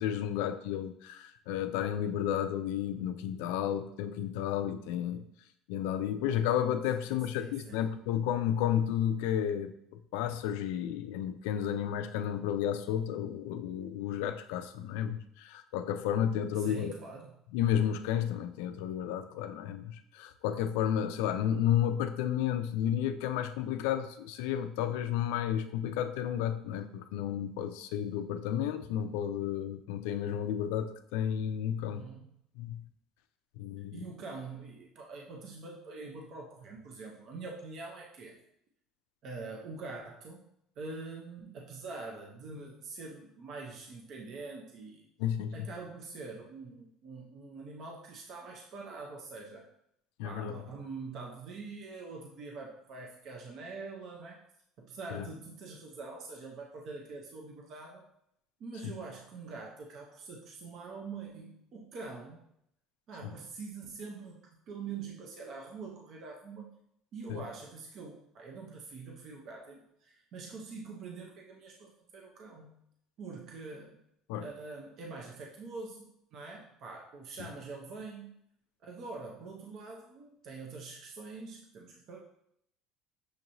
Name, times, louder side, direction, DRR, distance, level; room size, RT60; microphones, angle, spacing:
voice 1, 0.0-5.2 5.7-9.7 10.1-16.9 17.5-32.1 32.6-32.8 33.6-34.0 45.2-45.7 50.2-50.5 55.1-55.2 63.2-63.3 67.3-67.4 74.3-74.5, left 10 dB, 90° left, 9 dB, 0.3 m, -32 dB
voice 2, 7.0-7.9 16.6-17.3 31.7-32.3 33.9-38.4 39.2-40.5 40.8-45.0 45.5-49.7 50.2-54.4 54.8-58.1 58.6-62.4 63.1-66.8 67.1-72.8 73.2-74.0 74.4-78.4 78.8-82.2, right 4 dB, 50° right, 0 dB, 0.6 m, -44 dB
6.3 x 2.9 x 2.6 m, 0.74 s
cardioid pair, 135°, 0 cm